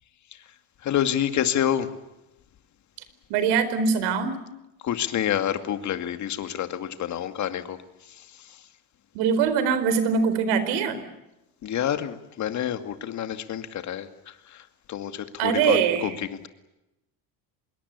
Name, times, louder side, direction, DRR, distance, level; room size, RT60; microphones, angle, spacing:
voice 1, 0.8-1.9 4.8-7.8 11.6-14.1 14.5-14.6 14.9-16.5, left 10 dB, 45° left, 9 dB, 2.4 m, -28 dB
voice 2, 3.3-4.4 9.1-11.0 15.4-16.2, right 6 dB, 75° right, 13 dB, 4.5 m, -23 dB
26.0 x 22.5 x 8.3 m, 0.93 s
cardioid pair, 140°, 41 cm